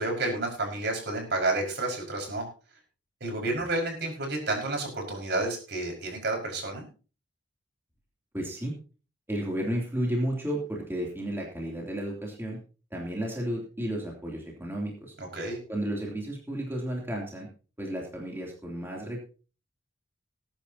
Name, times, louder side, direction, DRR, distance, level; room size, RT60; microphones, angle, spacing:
voice 1, 0.0-2.5 3.2-6.9 15.2-15.6, right 2 dB, 60° right, 1 dB, 5.5 m, -30 dB
voice 2, 8.3-8.7 9.3-12.6 12.9-15.1 15.7-17.5 17.8-19.2, right 1 dB, 15° right, -2 dB, 3.0 m, -32 dB
20.5 x 10.5 x 2.9 m, 0.36 s
head